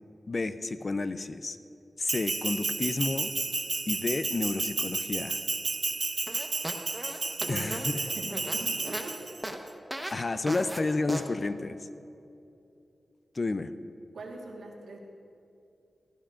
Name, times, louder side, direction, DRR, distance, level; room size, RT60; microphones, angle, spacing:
voice 1, 0.3-1.6 2.0-3.3 3.9-5.4 7.5-8.0 10.1-11.8 13.3-13.7, left 3 dB, 50° left, 12 dB, 0.5 m, -30 dB
Bell, 2.1-9.5, right 3 dB, 50° right, 0.5 m, -32 dB
sound 1, 6.3-9.1 9.4-9.6 9.9-10.2 10.5-10.8 11.1-11.3, right 1 dB, 10° right, 1.0 m, -36 dB
voice 2, 7.4-7.9 8.1-9.3 14.1-15.0, right 2 dB, 85° right, 0 dB, 1.5 m, -41 dB
17.5 x 14.0 x 2.5 m, 2.7 s
cardioid pair, 50°, 0 cm